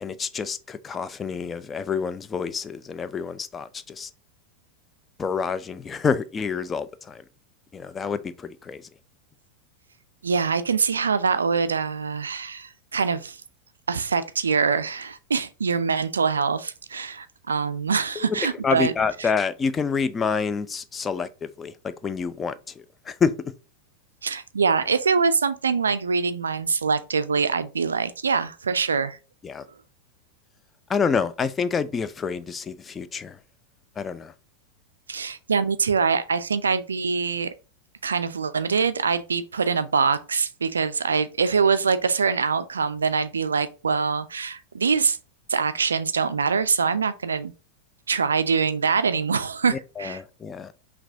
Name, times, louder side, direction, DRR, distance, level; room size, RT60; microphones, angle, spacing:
voice 1, 0.0-4.1 5.2-7.2 7.7-8.8 18.2-23.5 29.4-29.7 30.9-33.4 34.0-34.3 49.7-50.7, left 5 dB, 20° left, 0.3 m, -28 dB
voice 2, 10.2-13.4 13.9-18.9 24.2-29.2 35.1-37.5 38.0-45.2 45.5-47.5 48.1-50.2, right 5 dB, 70° right, 0.3 m, -24 dB
5.8 x 2.3 x 2.6 m
figure-of-eight pair, 90°, 0 cm